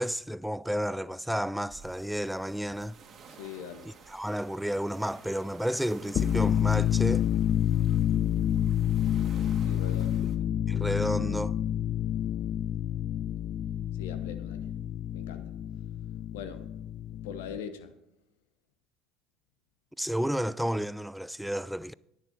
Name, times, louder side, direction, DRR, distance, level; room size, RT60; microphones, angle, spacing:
voice 1, 0.0-3.0 4.1-7.3 10.7-11.6 20.0-21.9, equal, 5° right, 0.3 m, -31 dB
sound 1, 1.7-10.4, right 5 dB, 45° right, 1.8 m, -53 dB
voice 2, 3.3-3.9 9.6-10.3 13.9-14.7 15.1-15.5 16.3-16.6 17.2-17.9, left 7 dB, 85° left, 1.0 m, -41 dB
sound 2, 6.0-17.6, left 10 dB, 50° left, 0.5 m, -28 dB
10.5 x 9.5 x 4.6 m
hypercardioid pair, 75°, 0 cm